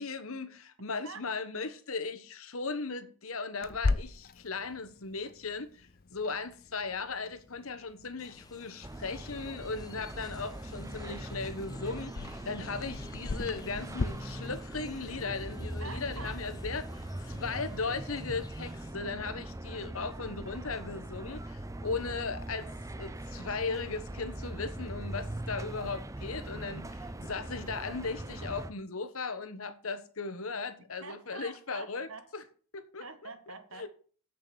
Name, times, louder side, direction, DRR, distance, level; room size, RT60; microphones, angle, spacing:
voice 1, 0.0-32.1 32.3-32.4 32.7-33.0 33.8-33.9, left 4 dB, 75° left, 1.3 m, -37 dB
Clock, 3.6-14.0, left 3 dB, 45° left, 0.5 m, -39 dB
sound 1, 8.2-18.9, left 1 dB, 15° left, 1.0 m, -47 dB
sound 2, 8.8-28.7, right 1 dB, 15° right, 0.6 m, -41 dB
voice 2, 15.8-16.4 31.0-32.3 33.0-33.9, right 4 dB, 70° right, 1.6 m, -46 dB
8.2 x 7.1 x 8.5 m
head